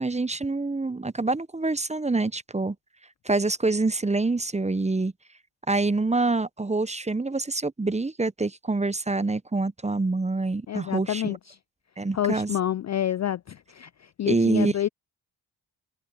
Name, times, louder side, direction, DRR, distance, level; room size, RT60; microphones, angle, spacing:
voice 1, 0.0-2.8 3.2-5.1 5.7-11.4 12.0-12.5 14.3-14.7, right 3 dB, 15° right, 0.8 m, -26 dB
voice 2, 10.7-11.6 12.1-14.9, left 11 dB, 35° left, 0.4 m, -28 dB
supercardioid pair, 45°, 49 cm